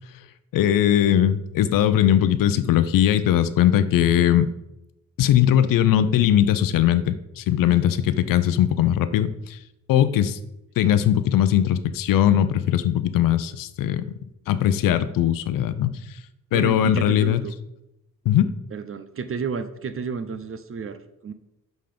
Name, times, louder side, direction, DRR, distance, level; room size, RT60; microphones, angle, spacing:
voice 1, 0.5-4.5 5.2-9.6 9.9-10.4 10.8-14.1 14.5-16.0 16.5-17.4 18.3-18.5, left 10 dB, 85° left, 13 dB, 0.6 m, -20 dB
voice 2, 16.5-17.5 18.7-21.3, right 5 dB, 40° right, 10 dB, 0.7 m, -31 dB
5.8 x 5.3 x 5.0 m, 0.87 s
cardioid pair, 75°, 32 cm